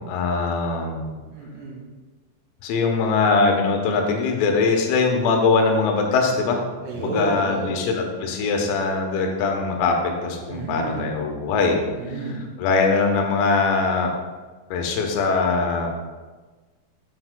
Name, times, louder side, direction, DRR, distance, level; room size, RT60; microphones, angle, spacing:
voice 1, 0.0-1.2 2.6-6.6 7.0-11.9 12.6-14.1 14.7-15.9, left 4 dB, 85° left, 3 dB, 3.6 m, -22 dB
voice 2, 1.3-1.8 6.8-7.8 10.5-11.0 12.0-12.4, right 2 dB, 85° right, -5 dB, 4.8 m, -31 dB
9.8 x 7.9 x 2.2 m, 1.3 s
omnidirectional pair, 5.9 m